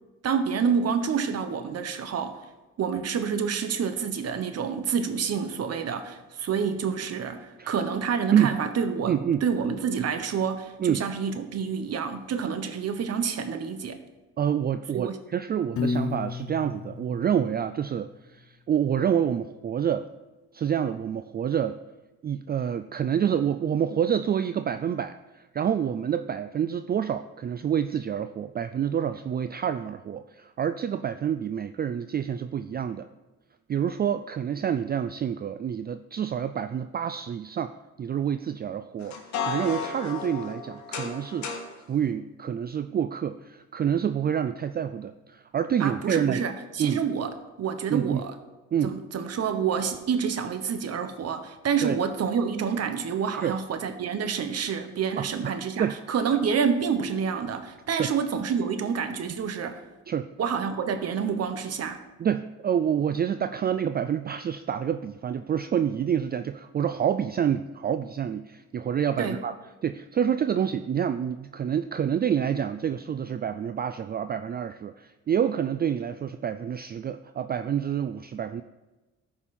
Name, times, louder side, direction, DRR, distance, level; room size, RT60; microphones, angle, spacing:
voice 1, 0.2-2.4 2.8-14.0 14.9-15.2 45.8-47.3 47.6-48.3 48.8-59.8 60.4-62.0 69.2-69.4, right 6 dB, 55° right, 9 dB, 1.1 m, -28 dB
voice 2, 9.1-9.4 10.8-11.0 14.4-20.1 20.5-21.8 22.2-33.1 33.7-41.5 41.9-46.4 46.8-47.0 47.9-48.2 48.7-49.0 51.8-52.0 53.3-53.6 55.2-55.9 57.9-58.1 60.1-60.3 62.2-69.5 69.8-78.6, right 8 dB, 35° right, 11 dB, 0.4 m, -27 dB
Piano, 15.8-18.0, left 4 dB, 45° left, 0.9 m, -32 dB
sound 1, 39.0-41.7, left 5 dB, 65° left, 1.7 m, -33 dB
13.5 x 5.4 x 4.3 m, 1.1 s
cardioid pair, 90°, 30 cm